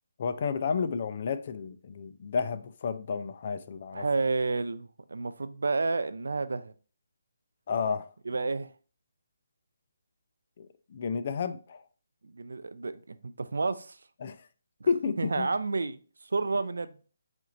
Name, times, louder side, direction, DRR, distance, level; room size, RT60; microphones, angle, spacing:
voice 1, 0.2-4.0 7.7-8.1 10.6-11.8 14.2-14.5 14.9-15.5, left 5 dB, 35° left, 0.3 m, -31 dB
voice 2, 3.9-6.7 8.3-8.7 12.2-14.0 15.2-16.9, right 3 dB, 90° right, 0.4 m, -30 dB
4.3 x 2.4 x 4.0 m
hypercardioid pair, 170°, 0 cm